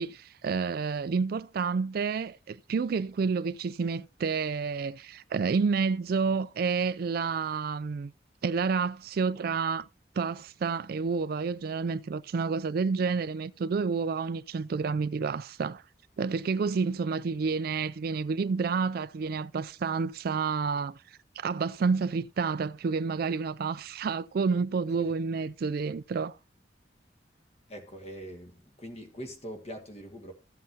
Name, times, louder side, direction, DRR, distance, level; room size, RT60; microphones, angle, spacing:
voice 1, 0.0-8.1 8.4-9.9 10.2-15.8 16.2-21.0 21.4-26.4, right 5 dB, 55° right, 0.4 m, -29 dB
voice 2, 27.7-30.3, equal, 35° left, 1.8 m, -42 dB
14.0 x 7.6 x 2.8 m
head